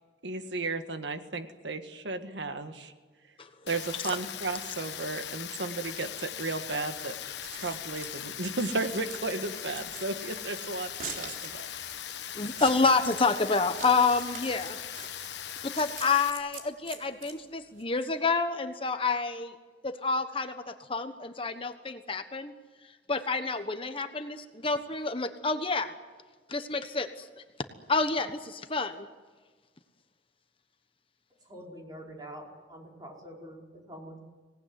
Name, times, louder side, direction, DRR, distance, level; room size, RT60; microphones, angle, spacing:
voice 1, 0.2-2.9 3.6-7.1 7.5-11.7, right 3 dB, 90° right, 8 dB, 1.7 m, -34 dB
Rain, 3.7-16.3, left 10 dB, 75° left, 1.2 m, -40 dB
Scissors, 7.2-17.8, right 5 dB, 50° right, 3.8 m, -45 dB
voice 2, 12.4-14.8 15.6-19.5 19.8-22.5 23.1-25.9 26.5-27.1 27.9-29.1, left 4 dB, 30° left, 8 dB, 1.2 m, -28 dB
voice 3, 31.4-34.2, equal, 25° right, -1 dB, 5.0 m, -45 dB
25.5 x 18.5 x 9.6 m, 1.4 s
head